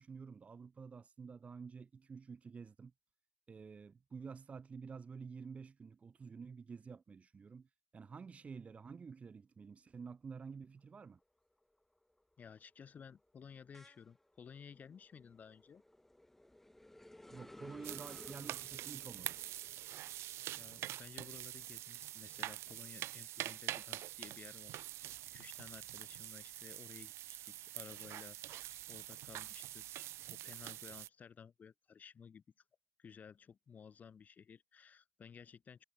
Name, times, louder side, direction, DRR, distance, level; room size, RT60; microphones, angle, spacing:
voice 1, 0.0-2.9 3.5-11.2 17.3-19.4, right 5 dB, 20° right, 3.5 m, -50 dB
sound 1, 10.8-11.2 11.6-22.9 23.3-25.0, left 1 dB, 5° left, 1.5 m, -59 dB
voice 2, 12.4-15.8 20.1-24.8 25.3-32.4 33.0-35.8, left 6 dB, 25° left, 4.9 m, -56 dB
sound 2, 17.8-31.1, right 14 dB, 45° right, 0.6 m, -45 dB
supercardioid pair, 110°, 6 cm